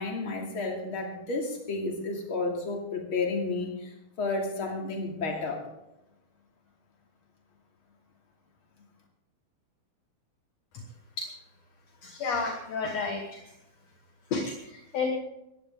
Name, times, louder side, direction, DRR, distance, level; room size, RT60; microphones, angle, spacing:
voice 1, 0.0-5.6, left 3 dB, 35° left, 1 dB, 3.1 m, -31 dB
voice 2, 12.0-13.4 14.3-15.1, left 4 dB, 60° left, 3 dB, 2.0 m, -31 dB
19.0 x 15.0 x 3.8 m, 0.88 s
omnidirectional pair, 4.3 m